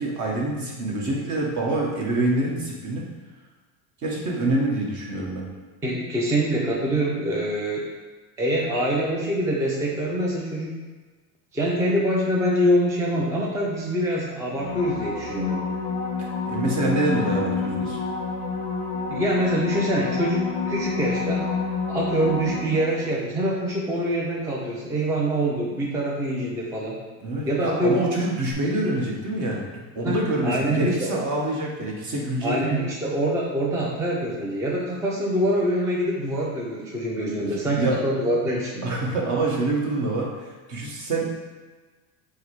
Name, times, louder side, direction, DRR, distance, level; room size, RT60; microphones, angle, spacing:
voice 1, 0.0-3.1 4.0-5.5 16.2-18.0 27.2-32.6 37.4-38.0 38.8-41.5, right 2 dB, 45° right, -2 dB, 1.2 m, -26 dB
voice 2, 5.8-7.9 8.4-10.8 11.5-15.6 19.1-21.5 21.9-27.0 27.5-28.0 30.0-30.2 30.4-31.2 32.4-38.9, right 1 dB, 10° right, -4 dB, 0.4 m, -25 dB
sound 1, 14.6-23.2 28.5-28.6, left 4 dB, 15° left, 0.8 m, -29 dB
4.7 x 2.1 x 4.6 m, 1.3 s
supercardioid pair, 120°, 42 cm